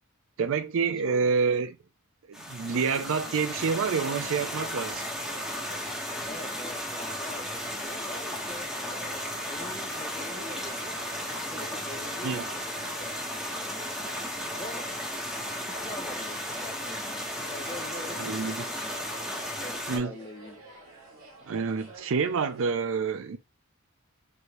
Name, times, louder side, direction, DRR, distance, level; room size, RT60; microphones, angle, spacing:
voice 1, 0.4-1.7 2.3-5.1 12.2-12.5 18.2-18.6 19.9-20.1 21.5-23.4, right 5 dB, 65° right, 0.4 m, -28 dB
voice 2, 0.9-1.4 6.2-11.0 11.5-12.6 13.5-14.0 14.5-15.0 15.8-19.0 19.6-20.6, left 2 dB, 20° left, 0.7 m, -44 dB
sound 1, 2.3-20.0, equal, 5° right, 1.2 m, -35 dB
sound 2, 3.5-22.6, right 2 dB, 85° right, 2.0 m, -48 dB
4.8 x 2.7 x 2.9 m
head